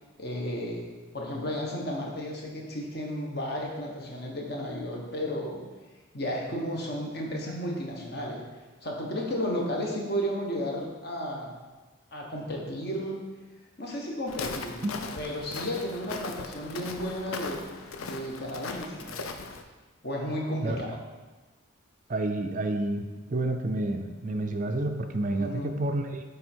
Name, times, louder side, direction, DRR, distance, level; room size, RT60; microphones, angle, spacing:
voice 1, 0.2-0.9 1.1-5.6 6.1-8.4 8.8-11.5 12.1-13.2 13.8-14.8 15.1-17.6 18.0-19.2 20.0-21.0 25.4-25.7, equal, 50° left, -1 dB, 1.2 m, -33 dB
Walk footsteps, 14.3-19.6, left 4 dB, 85° left, 0.5 m, -38 dB
voice 2, 22.1-23.0 23.3-26.2, right 2 dB, 40° right, 6 dB, 0.4 m, -29 dB
8.9 x 3.4 x 4.4 m, 1.3 s
head